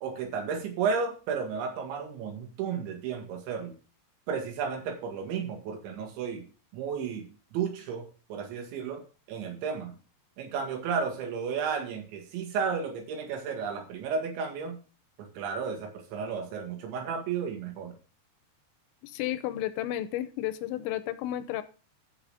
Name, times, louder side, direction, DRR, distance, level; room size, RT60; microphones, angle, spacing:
voice 1, 0.0-3.7 4.3-6.5 6.7-9.0 9.3-9.9 10.4-14.8 15.2-17.9, right 6 dB, 85° right, 3 dB, 4.3 m, -33 dB
voice 2, 19.0-21.6, left 13 dB, 85° left, 13 dB, 3.1 m, -32 dB
15.0 x 6.0 x 3.5 m, 0.35 s
omnidirectional pair, 5.1 m